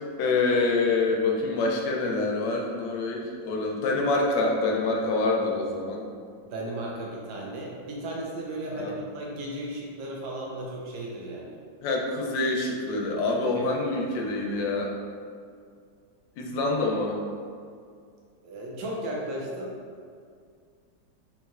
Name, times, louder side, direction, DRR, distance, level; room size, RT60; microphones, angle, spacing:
voice 1, 0.2-6.0 8.7-9.0 11.8-14.9 16.4-17.2, left 3 dB, 80° left, 0 dB, 1.2 m, -26 dB
voice 2, 6.4-11.6 13.5-13.7 18.4-19.7, right 1 dB, 90° right, -3 dB, 1.4 m, -35 dB
4.0 x 3.1 x 2.3 m, 2.2 s
omnidirectional pair, 2.0 m